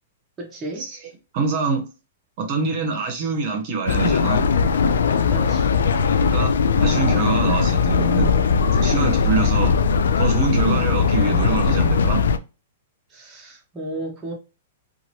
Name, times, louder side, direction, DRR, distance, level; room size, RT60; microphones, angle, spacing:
voice 1, 0.4-0.8 5.3-5.7 10.6-10.9 13.1-14.3, right 1 dB, 15° right, 1.0 m, -34 dB
voice 2, 1.3-1.9 2.4-4.4 6.1-9.7 10.2-12.2, right 4 dB, 45° right, 1.0 m, -25 dB
sound 1, 3.9-12.4, left 5 dB, 85° left, 0.4 m, -19 dB
2.8 x 2.6 x 3.0 m
hypercardioid pair, 145°, 0 cm